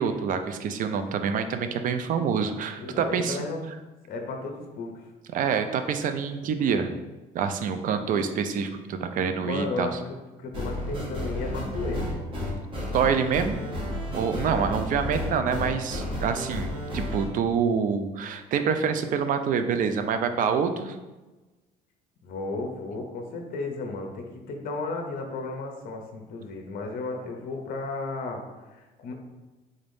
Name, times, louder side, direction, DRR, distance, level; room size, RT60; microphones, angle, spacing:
voice 1, 0.0-3.4 5.3-6.9 7.3-9.9 12.9-13.6 14.1-21.0, right 6 dB, 50° right, 8 dB, 0.4 m, -26 dB
voice 2, 2.8-3.6 4.1-5.0 9.4-10.0 10.4-12.1 22.2-29.1, left 3 dB, 60° left, 3 dB, 0.6 m, -34 dB
sound 1, 10.5-17.3, left 1 dB, 30° right, 1.3 m, -32 dB
3.8 x 3.4 x 2.6 m, 1.1 s
cardioid pair, 110°, 17 cm